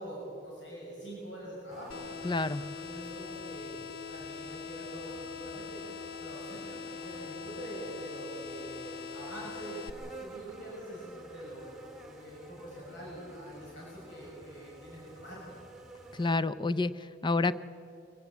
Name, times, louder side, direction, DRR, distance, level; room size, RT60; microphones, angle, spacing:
voice 1, 0.0-2.1 2.5-3.8 4.1-5.8 6.2-11.6 12.0-15.4, right 1 dB, 80° left, -4 dB, 6.0 m, -44 dB
sound 1, 1.7-16.4, right 2 dB, ahead, 2.3 m, -51 dB
sound 2, 1.9-9.9, left 6 dB, 60° left, 0.7 m, -42 dB
voice 2, 2.2-2.6 16.1-17.5, left 3 dB, 25° left, 14 dB, 0.5 m, -29 dB
23.5 x 16.0 x 8.3 m, 2.7 s
head